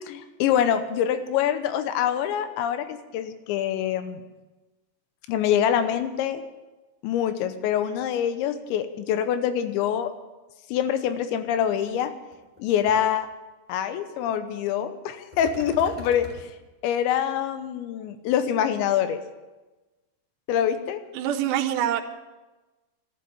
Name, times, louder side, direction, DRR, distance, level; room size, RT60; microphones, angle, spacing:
voice 1, 0.1-4.2 5.3-6.4 7.0-10.1 10.7-12.1 12.6-13.3 13.7-16.3 16.8-19.2 20.5-21.0, left 9 dB, 85° left, 10 dB, 3.2 m, -25 dB
sound 1, 11.9-12.0 12.3-12.6 12.9-13.0 15.3-16.4, left 1 dB, 15° left, 2.2 m, -41 dB
voice 2, 21.1-22.0, right 11 dB, 75° right, 2 dB, 2.8 m, -25 dB
13.0 x 13.0 x 7.7 m, 1.1 s
omnidirectional pair, 5.1 m